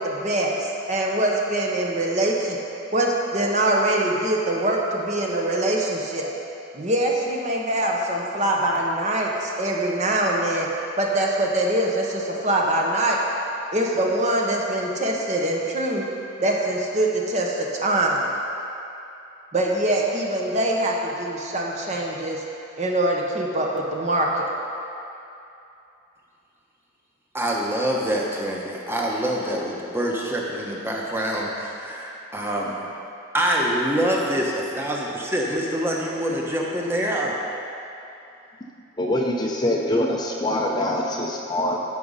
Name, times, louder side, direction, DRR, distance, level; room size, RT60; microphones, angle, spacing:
voice 1, 0.0-2.6 2.9-6.3 6.7-10.7 11.0-13.2 13.7-16.0 16.4-18.3 19.5-22.4 22.8-24.5, right 1 dB, 35° right, -1 dB, 1.0 m, -23 dB
voice 2, 27.3-32.8 33.3-37.3, equal, 10° right, -2 dB, 1.1 m, -25 dB
voice 3, 39.0-41.8, left 1 dB, 20° left, -1 dB, 0.6 m, -24 dB
13.5 x 5.1 x 5.6 m, 2.8 s
head